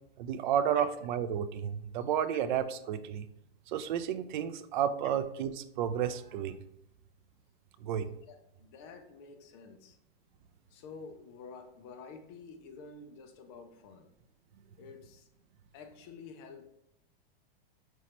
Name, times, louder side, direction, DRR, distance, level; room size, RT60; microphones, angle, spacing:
voice 1, 0.2-3.3 3.7-6.6 7.8-8.1, right 9 dB, 55° right, 11 dB, 0.4 m, -32 dB
voice 2, 7.9-10.0 10.7-14.1 14.8-15.3 15.7-16.7, left 4 dB, 30° left, 6 dB, 0.4 m, -50 dB
5.3 x 3.1 x 2.9 m, 0.79 s
supercardioid pair, 160°, 29 cm